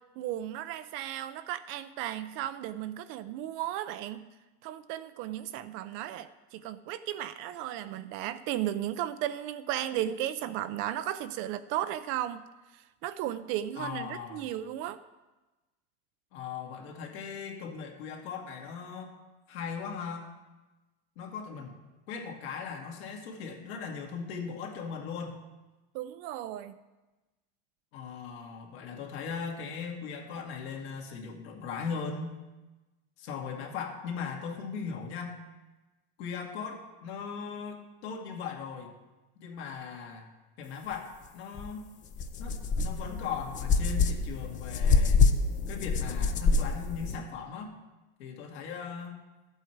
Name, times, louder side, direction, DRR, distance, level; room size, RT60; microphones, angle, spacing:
voice 1, 0.2-4.3 4.6-12.4 12.7-15.0 25.9-26.8, right 12 dB, 40° right, 13 dB, 0.4 m, -35 dB
voice 2, 13.8-14.4 16.3-19.2 19.5-20.3 21.2-21.7 22.1-25.4 27.9-32.4 33.2-35.4 36.2-38.9 39.4-40.3 40.6-41.9 42.4-45.2 45.7-47.7 48.2-49.2, left 6 dB, 65° left, 2 dB, 2.2 m, -38 dB
sound 1, 41.6-41.7 42.1-47.2, left 4 dB, 25° left, 0.5 m, -26 dB
12.5 x 8.0 x 4.6 m, 1.1 s
supercardioid pair, 150°, 33 cm